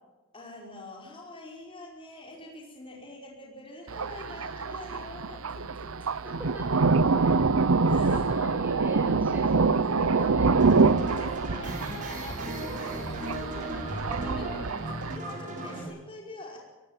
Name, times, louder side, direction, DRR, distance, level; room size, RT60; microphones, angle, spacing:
voice 1, 0.3-5.9 7.9-8.2 10.2-10.3 11.0-14.6 15.1-16.6, left 1 dB, 25° left, -2 dB, 5.2 m, -45 dB
Thunder, 3.9-15.2, right 4 dB, 85° right, 0.8 m, -26 dB
voice 2, 6.2-11.1 14.1-14.8, right 1 dB, 10° right, 1 dB, 7.1 m, -41 dB
sound 1, 10.5-15.8, right 1 dB, 40° right, 6.6 m, -37 dB
22.5 x 17.0 x 7.5 m, 1.2 s
head